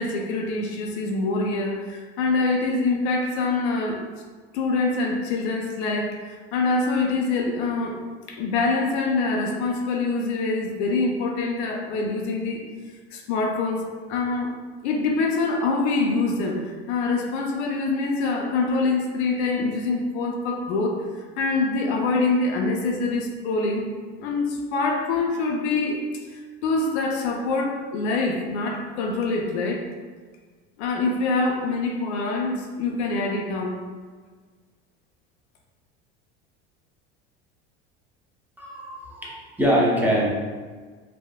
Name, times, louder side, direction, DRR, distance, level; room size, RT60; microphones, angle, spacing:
voice 1, 0.0-4.0 4.5-8.0 8.3-12.6 13.1-14.5 14.8-23.9 24.2-26.1 26.3-29.9 30.8-33.8, left 3 dB, 80° left, 1 dB, 0.5 m, -25 dB
voice 2, 38.6-40.3, equal, 5° right, -6 dB, 0.7 m, -23 dB
3.4 x 2.2 x 2.2 m, 1.5 s
hypercardioid pair, 85°, 33 cm